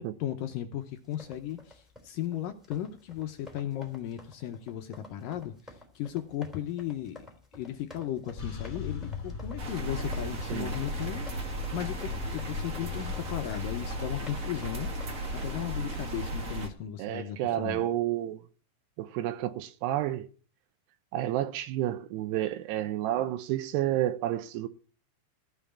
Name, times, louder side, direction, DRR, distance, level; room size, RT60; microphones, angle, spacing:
voice 1, 0.2-7.2 7.5-17.8, left 11 dB, 75° left, 2.0 m, -36 dB
sound 1, 1.0-15.5, left 2 dB, ahead, 2.4 m, -52 dB
sound 2, 8.4-15.8, left 6 dB, 30° left, 1.8 m, -41 dB
sound 3, 9.6-16.7, equal, 50° right, 0.9 m, -35 dB
voice 2, 17.0-18.4 19.0-20.3 21.1-24.7, right 13 dB, 80° right, 2.8 m, -30 dB
14.5 x 5.8 x 8.4 m
omnidirectional pair, 4.8 m